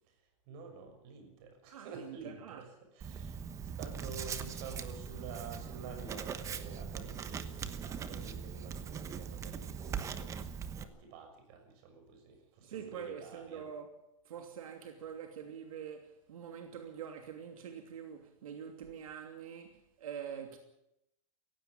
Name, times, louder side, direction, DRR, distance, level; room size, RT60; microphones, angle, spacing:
voice 1, 0.5-3.4 3.8-13.7, right 5 dB, 45° right, 6.4 m, -49 dB
voice 2, 1.7-2.6 12.6-13.9 14.2-20.6, right 8 dB, 90° right, 2.9 m, -45 dB
Writing, 3.0-10.8, right 7 dB, 20° right, 1.1 m, -41 dB
18.0 x 16.5 x 9.1 m
supercardioid pair, 155°, 17 cm